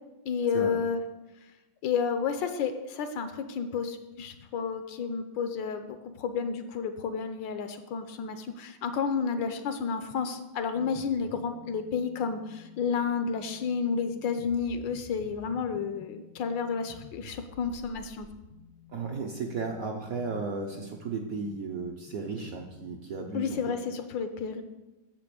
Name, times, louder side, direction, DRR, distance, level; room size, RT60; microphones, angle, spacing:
voice 1, 0.3-1.0 1.8-18.3 23.3-24.6, left 6 dB, 75° left, 8 dB, 1.2 m, -31 dB
sound 1, 10.7-23.6, left 4 dB, 45° left, 0.5 m, -52 dB
voice 2, 18.9-23.8, right 4 dB, 60° right, 2 dB, 0.9 m, -35 dB
6.7 x 6.0 x 6.7 m, 1.0 s
omnidirectional pair, 2.2 m